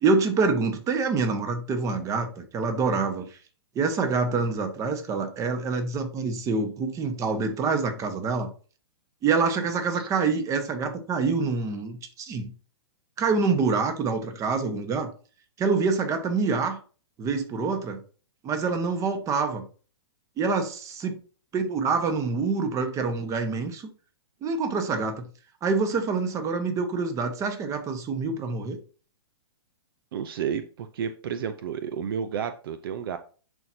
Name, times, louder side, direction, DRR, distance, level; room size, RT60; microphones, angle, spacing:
voice 1, 0.0-3.4 3.7-8.5 9.2-12.5 13.2-15.1 15.6-16.8 17.2-18.0 18.4-19.6 20.4-21.2 21.5-23.9 24.4-25.3 25.6-28.8, right 4 dB, 25° right, 7 dB, 1.3 m, -26 dB
voice 2, 30.1-33.2, right 7 dB, 60° right, 10 dB, 0.7 m, -31 dB
10.5 x 4.5 x 2.8 m, 0.38 s
hypercardioid pair, 130°, 14 cm